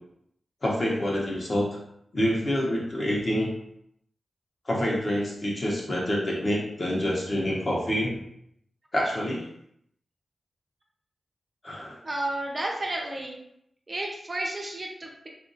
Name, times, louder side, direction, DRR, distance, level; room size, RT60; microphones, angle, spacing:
voice 1, 0.6-1.7 2.1-3.5 4.7-8.2 8.9-9.4 11.6-11.9, equal, 35° left, -3 dB, 0.8 m, -27 dB
voice 2, 12.0-13.4 13.9-15.3, right 1 dB, 25° right, -2 dB, 0.5 m, -32 dB
3.9 x 2.4 x 2.5 m, 0.75 s
wide cardioid pair, 175°, 0 cm